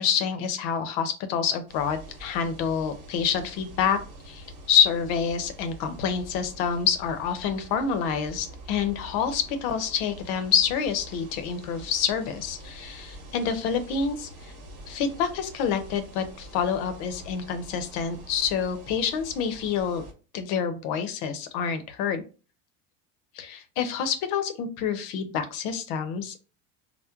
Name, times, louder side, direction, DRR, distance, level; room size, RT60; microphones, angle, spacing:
voice 1, 0.0-4.0 4.3-14.5 14.9-20.0 20.3-22.2 23.3-26.4, left 7 dB, 70° left, 9 dB, 0.7 m, -27 dB
sound 1, 1.7-20.1, right 1 dB, 50° right, 1.1 m, -45 dB
4.3 x 2.1 x 2.3 m, 0.34 s
supercardioid pair, 125°, 39 cm